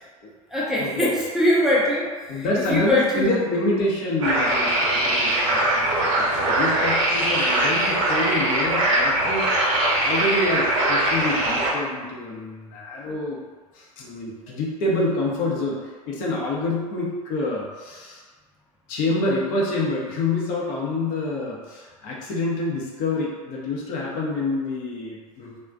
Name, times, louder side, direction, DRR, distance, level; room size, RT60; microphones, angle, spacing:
voice 1, 0.5-3.4, left 1 dB, ahead, -6 dB, 0.4 m, -22 dB
voice 2, 2.3-9.4 10.0-13.4 13.7-18.2 18.9-25.7, left 2 dB, 50° left, -3 dB, 0.7 m, -27 dB
sound 1, 4.2-11.7, right 1 dB, 60° right, 0.6 m, -21 dB
2.3 x 2.1 x 2.4 m, 1.4 s
figure-of-eight pair, 80°, 19 cm